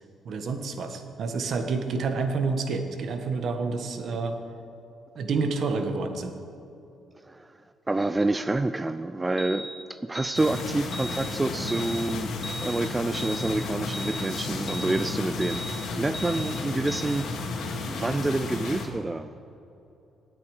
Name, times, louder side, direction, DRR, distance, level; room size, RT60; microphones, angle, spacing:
voice 1, 0.2-4.4 5.2-6.3, right 4 dB, 60° right, 6 dB, 1.4 m, -29 dB
voice 2, 7.2-7.6 7.9-12.3 12.6-17.3 17.9-19.3, right 2 dB, 20° right, 11 dB, 0.4 m, -28 dB
sound 1, 9.4-9.7 10.1-10.4 10.9-11.2 11.7-12.0 12.4-12.7 13.2-13.5 13.9-14.2 14.7-15.0 15.4-15.7 16.1-16.4 16.9-17.0, equal, 20° left, 1.7 m, -37 dB
sound 2, 10.3-18.9, left 3 dB, 75° left, 2.0 m, -33 dB
18.0 x 8.5 x 4.9 m, 2.8 s
cardioid pair, 90°, 0 cm